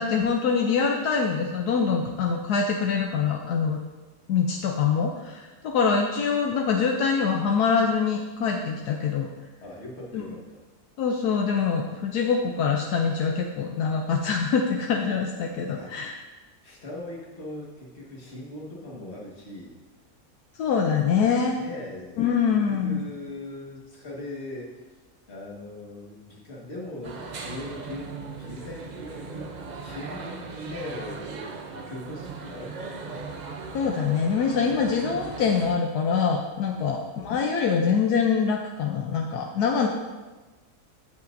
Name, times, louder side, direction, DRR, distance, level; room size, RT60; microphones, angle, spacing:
voice 1, 0.0-3.8 4.3-9.3 10.1-10.2 11.0-16.1 20.6-21.6 22.2-23.0 33.7-39.9, left 6 dB, 75° left, 1 dB, 1.2 m, -24 dB
voice 2, 9.6-10.6 15.8-16.0 16.6-19.7 21.6-24.7 25.3-29.5 29.8-33.3 36.7-37.1, left 1 dB, 45° left, -2 dB, 1.8 m, -40 dB
sound 1, 27.0-35.8, right 4 dB, 75° right, 0.4 m, -38 dB
15.5 x 5.7 x 2.6 m, 1.2 s
omnidirectional pair, 1.7 m